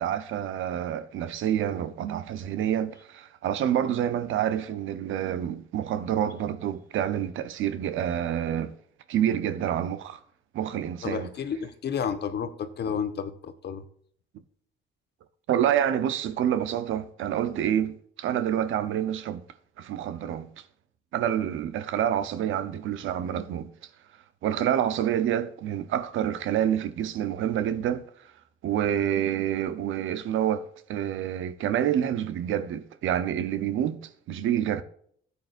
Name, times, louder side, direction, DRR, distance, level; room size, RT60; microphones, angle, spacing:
voice 1, 0.0-8.7 9.1-10.2 10.5-11.3 15.5-19.4 19.8-20.5 21.1-23.7 24.4-28.0 28.6-34.0 34.3-34.8, right 10 dB, 80° right, 0.9 m, -27 dB
voice 2, 11.0-13.8, left 7 dB, 60° left, 1.1 m, -31 dB
13.5 x 8.5 x 2.6 m
cardioid pair, 90°, 20 cm